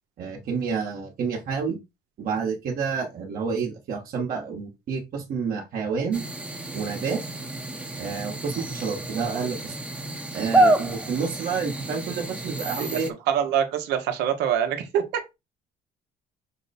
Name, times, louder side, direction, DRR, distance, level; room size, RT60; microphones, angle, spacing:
voice 1, 0.2-1.8 2.2-6.3 6.7-7.2 8.0-9.7 10.3-13.1, right 5 dB, 60° right, 1.2 m, -29 dB
sound 1, 6.1-13.1, right 1 dB, 5° right, 0.7 m, -28 dB
voice 2, 12.8-15.3, right 9 dB, 85° right, 1.0 m, -25 dB
6.0 x 2.2 x 4.1 m
cardioid pair, 110°, 17 cm